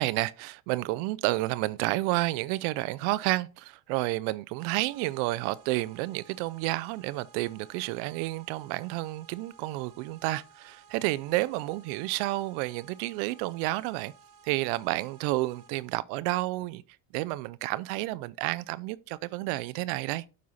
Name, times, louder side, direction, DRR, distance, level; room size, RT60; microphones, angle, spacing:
voice 1, 0.0-14.1 14.4-16.8 17.1-20.2, right 19 dB, 75° right, 0.5 m, -30 dB
sound 1, 4.6-16.0, right 5 dB, 55° right, 1.4 m, -57 dB
7.6 x 5.5 x 4.1 m
cardioid pair, 120°, 39 cm